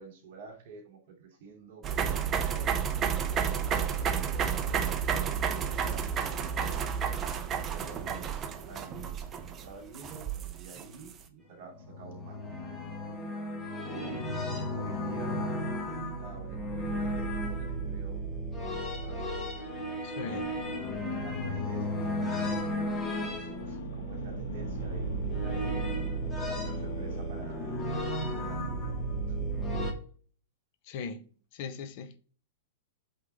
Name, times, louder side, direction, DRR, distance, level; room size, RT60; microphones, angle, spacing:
voice 1, 0.0-2.8 3.5-6.9 7.7-9.2 9.5-12.6 13.9-14.3 14.7-18.2 18.6-19.3 20.2-20.5 21.2-22.6 22.9-25.8 26.5-27.8 28.3-28.9 29.3-29.4, right 5 dB, 50° right, 2.9 m, -49 dB
sound 1, 1.8-11.1, right 7 dB, 15° right, 0.6 m, -31 dB
sound 2, 11.6-29.9, right 1 dB, 15° left, 1.2 m, -34 dB
voice 2, 20.0-20.5 22.0-22.1 30.8-31.2 31.5-32.2, left 5 dB, 40° left, 0.6 m, -39 dB
sound 3, 20.2-28.0, left 3 dB, 65° left, 1.8 m, -42 dB
8.2 x 3.6 x 3.5 m
supercardioid pair, 165°, 0 cm